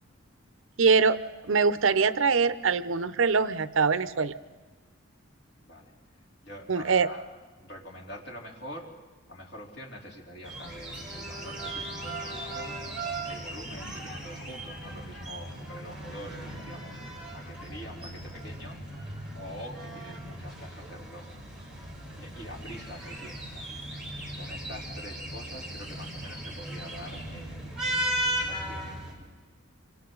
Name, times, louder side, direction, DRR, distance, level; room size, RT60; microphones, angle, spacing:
voice 1, 0.8-1.2 1.4-4.3 6.7-7.1, right 5 dB, 65° right, 14 dB, 0.7 m, -23 dB
voice 2, 5.6-5.9 6.4-7.3 7.6-8.9 9.3-12.9 13.3-17.0 17.3-18.8 19.4-21.4 21.8-21.9 22.2-23.9 24.3-27.9 28.5-29.0, equal, 55° left, -1 dB, 3.5 m, -45 dB
sound 1, 10.4-29.1, right 1 dB, 5° right, 4.7 m, -37 dB
27.5 x 25.5 x 3.9 m, 1.3 s
head